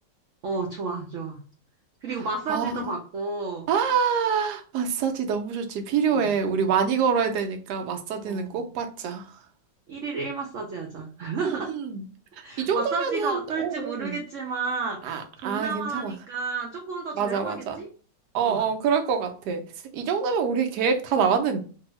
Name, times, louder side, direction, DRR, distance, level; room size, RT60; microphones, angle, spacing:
voice 1, 0.4-1.4 2.0-3.7 6.1-6.4 8.2-8.7 9.9-11.7 12.4-17.9 18.4-18.7, right 4 dB, 90° right, 1 dB, 0.6 m, -32 dB
voice 2, 2.5-2.8 3.7-9.2 11.4-12.0 12.6-14.2 15.0-16.1 17.2-17.8 18.3-19.6 19.9-21.6, right 6 dB, 70° right, 5 dB, 1.1 m, -26 dB
2.7 x 2.6 x 3.0 m, 0.39 s
omnidirectional pair, 2.0 m